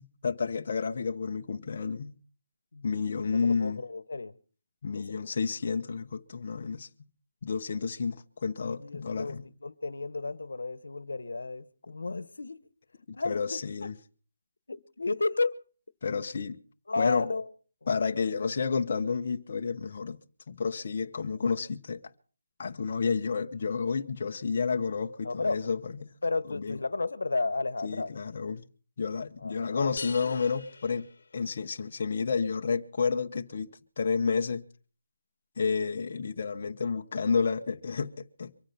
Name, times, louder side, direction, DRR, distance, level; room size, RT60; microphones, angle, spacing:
voice 1, 0.2-2.1 2.8-3.8 4.8-6.9 7.4-9.4 13.2-13.9 16.0-16.6 17.0-17.3 17.9-20.2 20.5-22.0 22.6-26.1 26.5-26.8 27.8-28.7 29.0-31.1 31.3-34.6 35.6-38.5, left 5 dB, 40° left, 1.0 m, -30 dB
voice 2, 3.3-4.3 4.9-5.3 8.6-9.3 9.6-12.6 13.1-13.9 14.7-15.6 16.9-17.4 17.8-17.9 25.2-25.6 26.2-28.1 29.4-30.4, left 3 dB, 85° left, 1.2 m, -33 dB
sound 1, 30.0-31.8, left 4 dB, 60° left, 1.5 m, -43 dB
24.0 x 8.8 x 5.8 m
hypercardioid pair, 175°, 0 cm